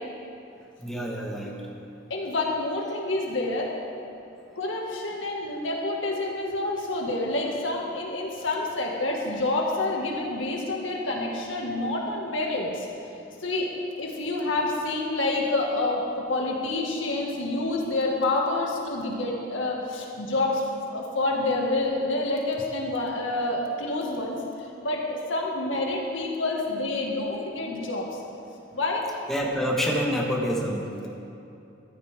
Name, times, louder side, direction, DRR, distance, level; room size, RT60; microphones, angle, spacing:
voice 1, 0.8-1.6 29.3-31.1, equal, ahead, -3 dB, 1.6 m, -27 dB
voice 2, 2.1-3.7 4.6-12.9 13.4-28.1 28.7-29.0, left 2 dB, 90° left, -1 dB, 2.1 m, -28 dB
14.5 x 14.0 x 3.7 m, 2.8 s
head